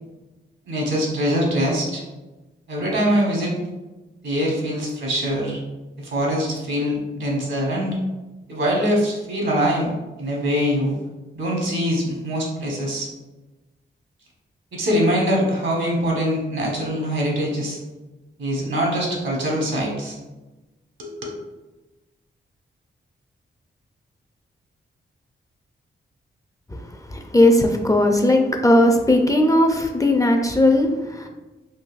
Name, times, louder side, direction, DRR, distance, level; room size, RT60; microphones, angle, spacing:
voice 1, 0.7-2.0 2.7-3.6 4.2-5.6 6.0-8.0 8.5-9.9 10.2-10.9 11.3-13.1 14.7-17.8 18.4-20.2 21.0-21.1, equal, 70° right, -2 dB, 1.2 m, -23 dB
voice 2, 26.7-31.3, left 1 dB, 15° left, 3 dB, 0.4 m, -18 dB
3.9 x 2.6 x 2.4 m, 1.1 s
cardioid pair, 65°, 21 cm